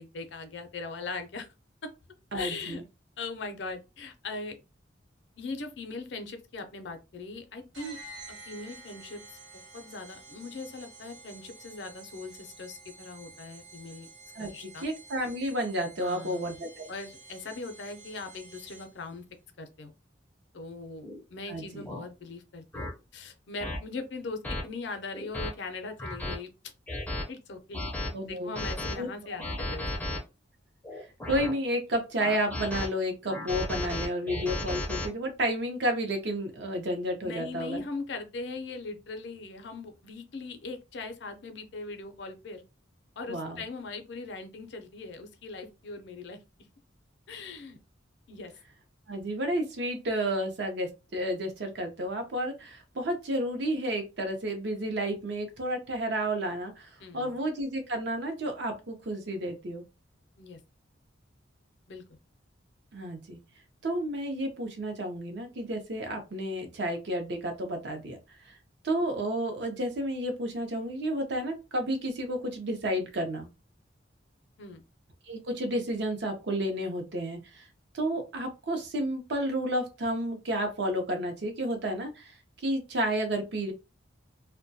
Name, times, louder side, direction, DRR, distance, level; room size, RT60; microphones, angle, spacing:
voice 1, 0.0-1.5 1.8-1.9 2.3-2.8 3.2-4.6 5.4-8.0 8.3-14.1 14.4-14.9 16.0-16.5 16.9-19.2 19.6-19.9 20.5-26.7 27.3-27.8 28.3-30.1 37.2-42.6 43.2-46.4 47.3-47.8 48.3-48.5 57.0-57.4 60.4-60.6 61.9-62.0 74.6-74.8, left 3 dB, 65° left, 0.5 m, -40 dB
voice 2, 2.3-2.8 14.4-16.9 21.5-21.9 28.1-28.6 29.0-29.1 31.2-37.8 43.3-43.6 49.1-59.8 62.9-63.4 63.8-68.2 68.5-68.6 68.8-73.5 75.3-77.6 77.9-82.3 82.6-83.7, right 1 dB, 65° right, 0.6 m, -31 dB
sound 1, 7.7-19.1, right 3 dB, 85° right, 0.9 m, -50 dB
sound 2, 21.0-21.2 21.9-22.0 22.7-22.9 23.6-23.8 24.4-24.6 25.1-25.5 26.0-26.4 26.9-27.2 27.7-28.1 28.6-29.0 29.4-30.2 30.8-31.5 32.2-32.9 33.3-35.1, left 1 dB, 10° left, 0.4 m, -34 dB
2.2 x 2.2 x 2.6 m
head